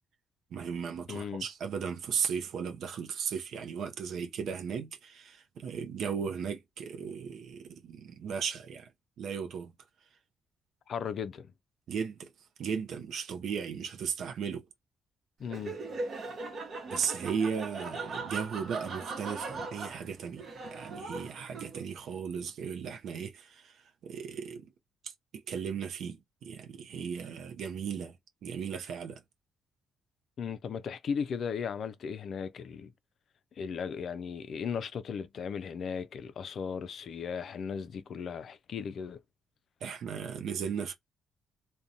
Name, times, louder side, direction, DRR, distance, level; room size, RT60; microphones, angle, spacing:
voice 1, 0.5-8.9 9.2-9.7 11.9-12.3 12.6-14.7 16.9-24.7 25.0-28.2 28.4-29.2 39.8-40.9, right 7 dB, 70° right, 0.5 m, -36 dB
voice 2, 1.1-1.4 10.9-11.5 15.4-15.8 30.4-32.9 33.6-39.2, left 6 dB, 60° left, 0.3 m, -36 dB
Laughter, 15.4-22.0, right 3 dB, 50° right, 0.9 m, -39 dB
2.5 x 2.2 x 2.7 m
cardioid pair, 90°, 0 cm